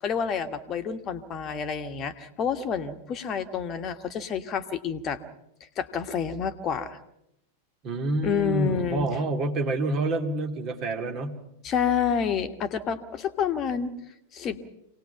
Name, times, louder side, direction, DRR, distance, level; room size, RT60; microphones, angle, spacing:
voice 1, 0.0-5.2 5.7-7.0 8.2-9.1 11.6-13.9 14.3-14.6, left 7 dB, 30° left, 9 dB, 1.5 m, -29 dB
voice 2, 7.8-11.4, right 2 dB, 35° right, 3 dB, 2.8 m, -28 dB
26.5 x 19.0 x 5.8 m, 0.81 s
figure-of-eight pair, 90°, 0 cm